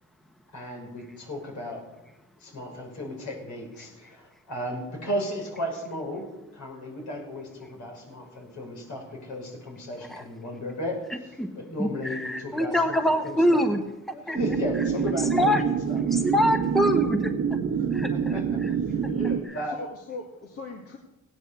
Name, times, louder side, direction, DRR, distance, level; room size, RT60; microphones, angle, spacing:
voice 1, 0.5-1.8 2.4-6.3 6.5-11.0 11.5-13.6 14.1-15.6 15.9-16.0 17.8-19.0 19.5-19.8, left 1 dB, 70° left, 1 dB, 5.9 m, -35 dB
voice 2, 11.1-11.5 11.8-14.4 15.3-15.6 16.1-17.3 17.9-18.7, equal, ahead, 7 dB, 1.1 m, -25 dB
sound 1, 14.4-19.4, right 7 dB, 60° right, 1.3 m, -26 dB
voice 3, 19.1-19.4 19.6-21.0, left 3 dB, 50° left, 2 dB, 2.1 m, -38 dB
16.5 x 9.5 x 7.0 m, 1.0 s
cardioid pair, 90°, 30 cm